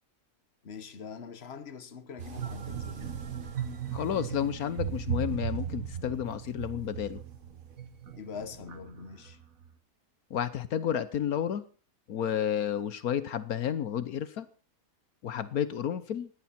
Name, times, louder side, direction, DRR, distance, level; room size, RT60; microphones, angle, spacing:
voice 1, 0.6-3.2 8.2-9.4, left 6 dB, 45° left, 1.6 m, -43 dB
sound 1, 2.2-9.7, right 8 dB, 65° right, 2.0 m, -37 dB
voice 2, 3.9-7.2 10.3-11.6 12.1-14.5 15.2-16.3, left 9 dB, 80° left, 1.4 m, -31 dB
20.0 x 14.5 x 4.3 m
omnidirectional pair, 1.5 m